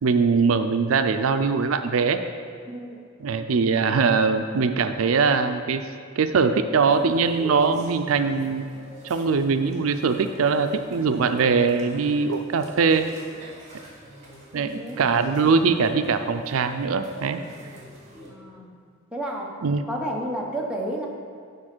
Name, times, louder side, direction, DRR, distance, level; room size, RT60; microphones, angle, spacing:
voice 1, 0.0-2.2 3.2-5.9 6.2-8.7 9.0-13.1 13.4-13.5 14.5-17.4 19.6-19.8, right 5 dB, 90° right, 9 dB, 0.5 m, -22 dB
voice 2, 2.7-3.0 14.5-15.0 18.2-18.7 19.1-19.5 19.9-21.1, right 1 dB, 5° right, -3 dB, 1.1 m, -31 dB
sound 1, 6.9-18.3, right 1 dB, 35° right, 2.2 m, -43 dB
8.6 x 5.2 x 6.1 m, 2.2 s
head